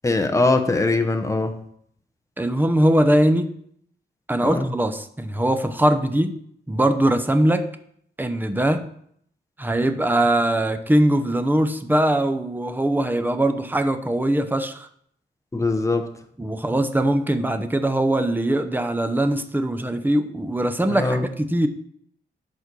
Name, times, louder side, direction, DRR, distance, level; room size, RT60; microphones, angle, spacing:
voice 1, 0.0-1.6 4.4-4.7 15.5-16.1 20.9-21.3, left 2 dB, 15° left, 1.0 m, -21 dB
voice 2, 2.4-3.5 4.3-6.4 6.7-7.7 8.2-8.9 9.6-14.9 16.4-21.7, right 1 dB, 10° right, 0.9 m, -21 dB
11.0 x 4.4 x 6.2 m
wide cardioid pair, 105°, 18 cm